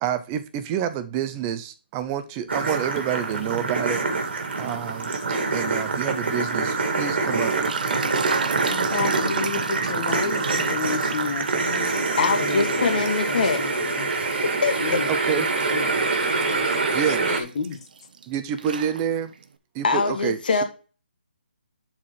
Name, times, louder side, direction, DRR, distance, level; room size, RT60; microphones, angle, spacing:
voice 1, 0.0-4.0 4.6-5.1 5.5-8.0 15.1-15.5 16.9-17.4 18.3-19.3 19.7-20.4, right 9 dB, 10° right, 0.3 m, -28 dB
sound 1, 2.5-17.4, right 3 dB, 65° right, 2.1 m, -25 dB
sound 2, 7.3-13.7 14.1-18.3 18.6-19.4, right 5 dB, 50° right, 0.8 m, -34 dB
voice 2, 8.7-14.1 14.8-16.1 16.5-16.8 17.2-17.8, left 5 dB, 30° left, 1.0 m, -32 dB
voice 3, 12.2-13.6 14.6-15.0 19.8-20.6, left 4 dB, 55° left, 1.9 m, -23 dB
11.5 x 4.3 x 3.1 m
hypercardioid pair, 175°, 6 cm